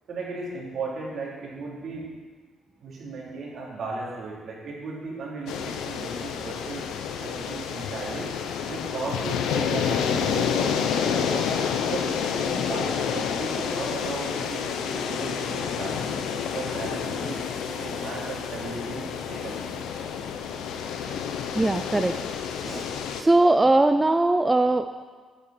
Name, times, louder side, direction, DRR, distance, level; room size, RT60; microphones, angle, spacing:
voice 1, 0.1-2.0 2.8-6.8 7.2-8.3 8.7-11.5 11.9-16.2 16.5-17.4 17.7-19.8, right 3 dB, 60° right, -5 dB, 3.5 m, -36 dB
sound 1, 5.5-23.2, left 7 dB, 90° left, 0.7 m, -29 dB
voice 2, 21.5-22.1 22.6-22.9 23.2-25.1, right 2 dB, 15° right, 8 dB, 0.4 m, -21 dB
9.6 x 8.6 x 4.4 m, 1.5 s
cardioid pair, 90°, 0 cm